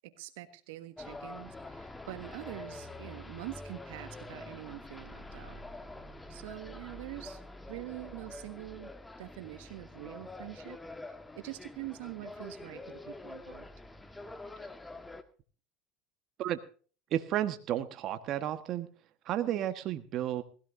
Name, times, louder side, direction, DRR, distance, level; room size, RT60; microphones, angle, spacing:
voice 1, 0.0-5.6 6.3-7.4 7.7-8.9 9.2-10.8 11.3-13.7 19.4-19.6, right 17 dB, 80° right, 10 dB, 1.5 m, -45 dB
sound 1, 1.0-15.2, left 2 dB, 10° left, 1.6 m, -46 dB
voice 2, 17.1-18.9 19.2-20.4, right 12 dB, 50° right, 8 dB, 1.4 m, -32 dB
20.0 x 16.0 x 2.7 m, 0.41 s
supercardioid pair, 100°, 0 cm